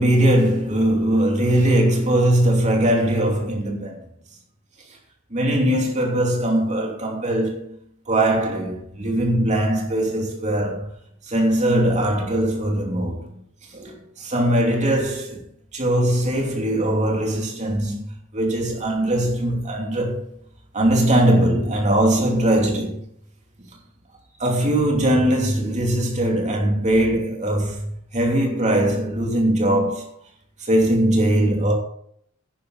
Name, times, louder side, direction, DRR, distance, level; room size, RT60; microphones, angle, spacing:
voice 1, 0.0-4.0 5.3-7.8 8.1-10.9 11.2-13.4 13.7-15.4 15.7-20.3 20.7-23.0 24.4-30.1 30.6-31.7, right 1 dB, 35° right, 2.8 m, -20 dB
10.5 x 9.8 x 4.1 m
head